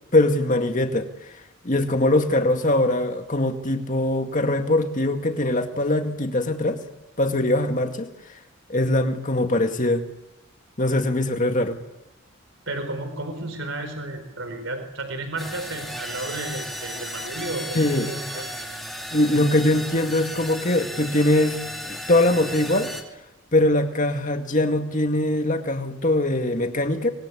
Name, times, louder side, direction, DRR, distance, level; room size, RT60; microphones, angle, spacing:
voice 1, 0.1-1.1 1.6-6.8 7.2-8.1 8.7-10.0 10.8-11.8 17.7-18.1 19.1-21.6 21.8-22.9 23.5-27.1, left 1 dB, 35° left, 6 dB, 2.1 m, -22 dB
voice 2, 12.7-18.5, right 2 dB, 60° right, 7 dB, 4.4 m, -32 dB
sound 1, 15.4-23.0, equal, ahead, 2.6 m, -35 dB
25.0 x 20.5 x 8.5 m, 0.96 s
head